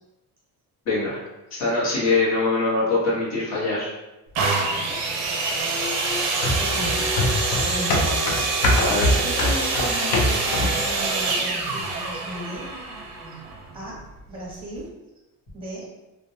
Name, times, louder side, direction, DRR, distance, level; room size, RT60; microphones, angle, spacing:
voice 1, 0.9-1.2 1.5-3.9 8.8-9.1, left 3 dB, 45° left, -7 dB, 1.0 m, -23 dB
sound 1, 4.3-14.0 14.8-14.9, right 3 dB, 50° right, 0.5 m, -26 dB
voice 2, 4.6-5.1 6.4-8.4 9.2-12.7 13.3-13.4 13.7-14.0 14.3-14.9 15.5-15.9, right 1 dB, 15° right, -5 dB, 0.8 m, -35 dB
sound 2, 6.4-10.9 11.3-11.4, left 1 dB, 85° left, 0.6 m, -23 dB
2.2 x 2.1 x 2.7 m, 1.0 s
cardioid pair, 155°, 36 cm